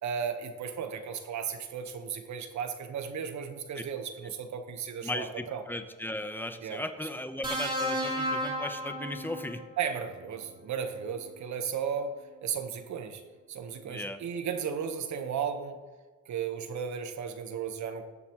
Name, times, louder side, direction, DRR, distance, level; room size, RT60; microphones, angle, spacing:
voice 1, 0.0-5.6 6.6-6.8 9.8-13.2 13.5-15.8 16.3-18.0, right 7 dB, 70° right, 6 dB, 1.4 m, -35 dB
voice 2, 5.0-9.6 13.9-14.2, left 1 dB, 5° left, 8 dB, 1.0 m, -37 dB
sound 1, 7.4-9.7 11.0-11.2, equal, 15° right, 3.7 m, -33 dB
19.5 x 7.1 x 3.2 m, 1.3 s
cardioid pair, 90°, 30 cm